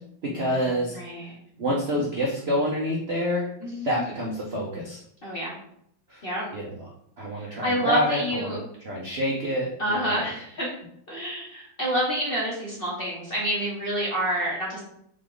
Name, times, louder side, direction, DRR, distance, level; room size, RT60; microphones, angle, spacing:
voice 1, 0.2-1.0 1.2-1.3 1.6-3.5 3.8-5.0 6.1-6.3 6.5-8.6 8.8-10.3, equal, 70° right, -3 dB, 0.6 m, -27 dB
voice 2, 0.9-1.3 3.6-3.9 5.2-5.6 6.2-6.5 7.3-8.6 9.8-10.7 11.1-14.8, equal, 40° left, -4 dB, 0.8 m, -28 dB
4.0 x 3.4 x 3.8 m, 0.70 s
omnidirectional pair, 2.1 m